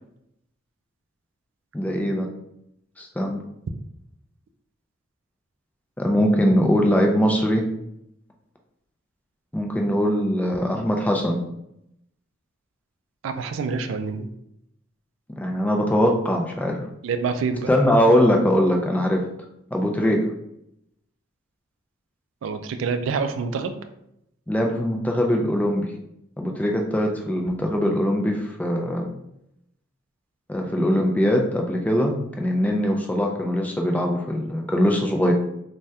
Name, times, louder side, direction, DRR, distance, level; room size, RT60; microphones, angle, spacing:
voice 1, 1.7-2.3 3.0-3.4 6.0-7.7 9.5-11.4 15.4-16.8 17.7-19.2 19.7-20.3 24.5-25.9 26.4-29.1 30.5-35.3, equal, 10° left, 1 dB, 0.3 m, -21 dB
voice 2, 13.2-14.3 17.0-17.7 22.4-23.8, right 5 dB, 75° right, 9 dB, 0.3 m, -27 dB
3.4 x 2.2 x 2.6 m, 0.79 s
head